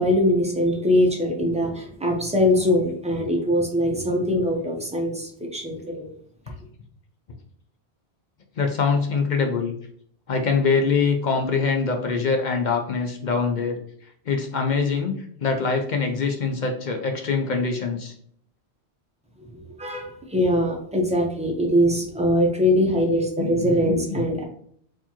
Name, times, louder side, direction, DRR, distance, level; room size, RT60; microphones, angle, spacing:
voice 1, 0.0-6.1 19.8-24.4, left 1 dB, 10° right, 0 dB, 0.6 m, -22 dB
voice 2, 8.6-9.7 10.3-13.8 14.3-15.1 15.4-18.1 23.4-24.2, left 4 dB, 55° left, 4 dB, 0.6 m, -24 dB
4.4 x 2.7 x 2.9 m, 0.62 s
omnidirectional pair, 1.1 m